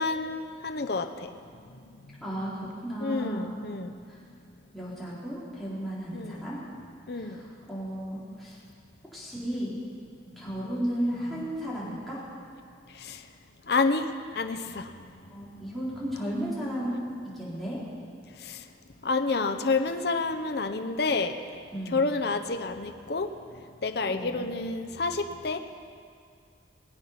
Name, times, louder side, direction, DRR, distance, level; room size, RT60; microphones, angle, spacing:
voice 1, 0.0-1.4 1.7-2.2 3.0-4.0 6.1-6.4 7.1-7.4 11.3-11.5 12.9-13.2 13.7-14.9 18.4-18.7 19.0-21.4 21.9-23.3 23.8-25.6, left 3 dB, 60° left, 7 dB, 0.7 m, -29 dB
voice 2, 2.2-3.6 4.1-4.2 4.7-6.6 7.2-8.6 9.1-9.8 10.4-12.2 15.3-17.0 17.2-17.8 21.7-22.1 24.1-24.5, equal, ahead, -9 dB, 3.8 m, -34 dB
22.0 x 8.5 x 5.8 m, 2.2 s
head